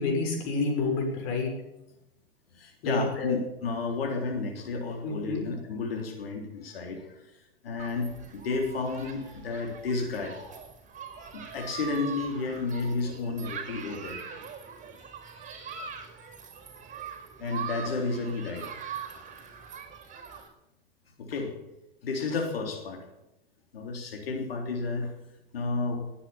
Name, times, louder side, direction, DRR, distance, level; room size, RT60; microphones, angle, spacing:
voice 1, 0.0-1.5 2.8-3.4 5.0-5.4, left 3 dB, 55° left, 2 dB, 6.7 m, -28 dB
voice 2, 2.5-7.2 7.6-10.4 11.3-14.2 17.4-18.7 21.2-21.5 22.0-23.1 23.7-25.1 25.5-26.0, left 3 dB, 80° left, 3 dB, 3.5 m, -32 dB
Human group actions, 7.8-20.5, right 7 dB, 25° right, 5.4 m, -42 dB
19.5 x 9.8 x 7.3 m, 0.93 s
hypercardioid pair, 85°, 29 cm